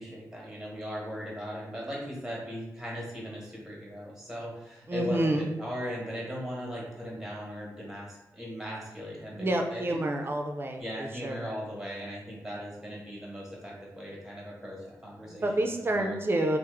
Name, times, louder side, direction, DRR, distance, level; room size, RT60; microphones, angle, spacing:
voice 1, 0.0-10.0 10.8-16.2, equal, 5° right, -4 dB, 1.2 m, -38 dB
voice 2, 4.9-5.5 9.4-11.5 15.3-16.6, right 1 dB, 35° right, 3 dB, 0.4 m, -29 dB
3.0 x 2.0 x 3.5 m, 0.91 s
cardioid pair, 80°, 7 cm